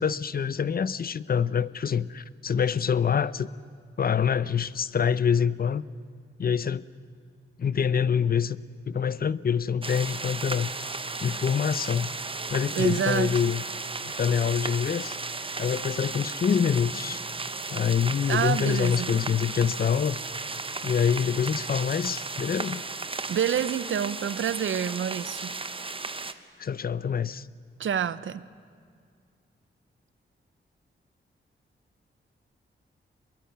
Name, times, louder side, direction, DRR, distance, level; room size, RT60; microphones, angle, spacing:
voice 1, 0.0-3.5 4.0-5.8 6.4-6.8 7.6-8.6 8.9-10.7 11.2-12.1 12.5-13.6 14.0-15.2 15.6-17.2 17.7-20.2 20.8-22.8 26.6-27.5, left 7 dB, 50° left, 0.6 m, -25 dB
sound 1, 9.8-26.3, right 3 dB, 25° right, 1.0 m, -35 dB
voice 2, 12.8-13.3 18.3-19.1 23.3-25.6 27.8-28.4, right 8 dB, 75° right, 0.8 m, -27 dB
24.5 x 21.5 x 9.4 m
wide cardioid pair, 130°, 20 cm